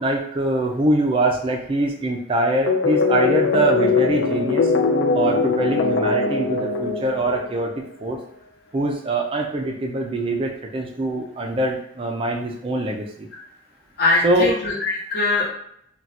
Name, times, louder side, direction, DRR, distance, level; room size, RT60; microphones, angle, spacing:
voice 1, 0.0-4.7 5.1-7.7 8.0-8.2 8.7-13.3 14.2-14.5, right 2 dB, 25° right, 1 dB, 0.3 m, -23 dB
sound 1, 2.7-7.8, left 4 dB, 65° left, 0.4 m, -21 dB
voice 2, 14.0-15.5, left 2 dB, 50° left, -4 dB, 1.0 m, -21 dB
2.4 x 2.2 x 4.0 m, 0.70 s
head